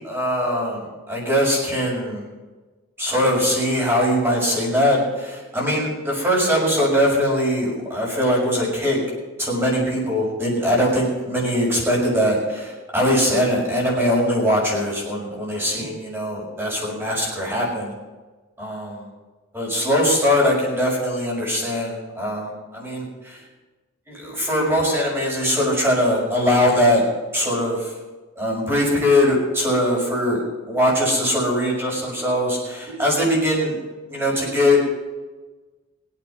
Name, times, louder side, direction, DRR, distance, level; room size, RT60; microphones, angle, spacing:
voice 1, 0.0-2.2 3.0-9.0 9.4-17.9 18.6-19.1 19.5-23.4 24.1-27.0 27.3-27.9 28.4-33.8 34.1-34.8, equal, 10° right, -4 dB, 6.1 m, -21 dB
23.5 x 9.0 x 4.7 m, 1.3 s
head